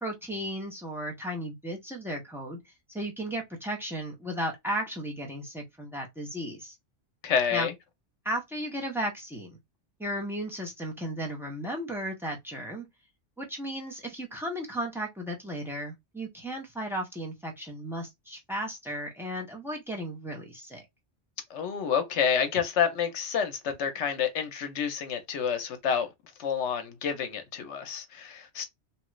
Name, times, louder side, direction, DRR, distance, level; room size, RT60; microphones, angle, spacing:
voice 1, 0.0-2.6 2.9-6.7 7.5-7.7 8.2-9.6 10.0-12.9 13.4-20.8, equal, ahead, 0.6 m, -35 dB
voice 2, 7.2-7.7 21.5-26.1 26.4-28.6, left 7 dB, 70° left, 0.9 m, -29 dB
3.0 x 2.3 x 3.0 m
omnidirectional pair, 1.3 m